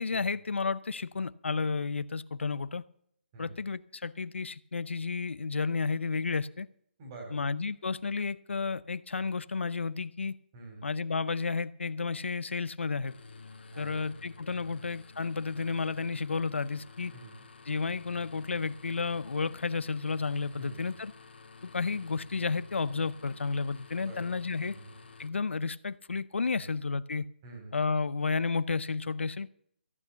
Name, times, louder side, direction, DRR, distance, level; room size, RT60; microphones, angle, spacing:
voice 1, 0.0-2.8 3.4-6.7 7.3-10.4 10.8-13.1 13.8-17.1 17.7-21.1 21.6-24.8 25.2-27.2 27.7-29.5, left 4 dB, 85° left, 0.7 m, -32 dB
voice 2, 7.0-7.5 10.5-10.9 13.7-14.1 14.6-14.8 17.1-17.4 20.5-20.9 24.0-24.4 24.6-25.0 26.5-26.8 27.4-27.8, right 2 dB, 25° right, 3.6 m, -47 dB
sound 1, 13.0-25.3, left 4 dB, 65° left, 1.8 m, -52 dB
14.5 x 8.5 x 6.9 m
hypercardioid pair, 165°, 6 cm